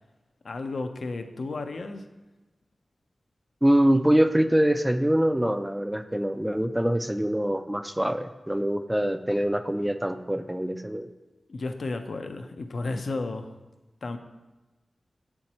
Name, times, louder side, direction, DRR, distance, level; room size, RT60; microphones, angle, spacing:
voice 1, 0.4-2.0 11.5-13.5 14.0-14.2, left 3 dB, 70° left, 7 dB, 0.5 m, -33 dB
voice 2, 3.6-11.1, equal, 5° right, 9 dB, 0.3 m, -24 dB
7.4 x 4.5 x 4.2 m, 1.2 s
wide cardioid pair, 115°, 0 cm